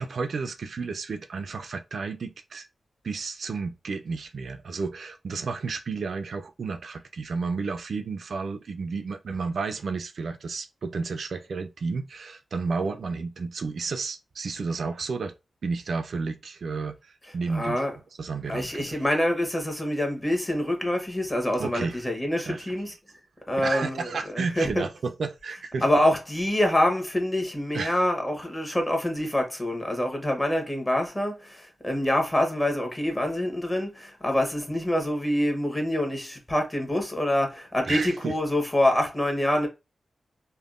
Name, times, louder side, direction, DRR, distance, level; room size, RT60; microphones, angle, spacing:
voice 1, 0.0-2.7 3.0-15.3 15.6-17.8 18.2-19.0 21.6-22.0 22.5-22.9 23.6-25.8 27.7-28.0 37.9-38.4, right 4 dB, 70° right, 0.4 m, -32 dB
voice 2, 17.5-17.9 18.5-22.9 23.5-24.8 25.8-39.7, left 1 dB, 20° left, 1.0 m, -26 dB
3.5 x 2.2 x 2.4 m
wide cardioid pair, 90°, 0 cm